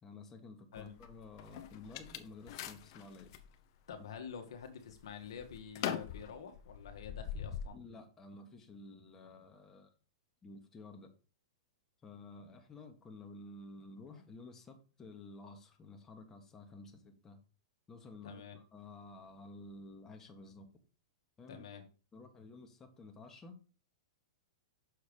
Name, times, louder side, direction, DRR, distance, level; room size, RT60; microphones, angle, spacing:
voice 1, 0.0-3.3 7.5-9.9 10.4-11.1 12.0-17.4 17.9-20.7 21.4-21.6 22.1-23.6, left 3 dB, 20° left, 1.4 m, -52 dB
sound 1, 0.8-3.5 4.0-4.6 4.9-7.7, left 9 dB, 55° left, 0.9 m, -42 dB
voice 2, 3.9-7.8 18.2-18.6 21.5-21.8, left 7 dB, 75° left, 1.4 m, -48 dB
6.5 x 4.7 x 5.2 m
hypercardioid pair, 125°, 3 cm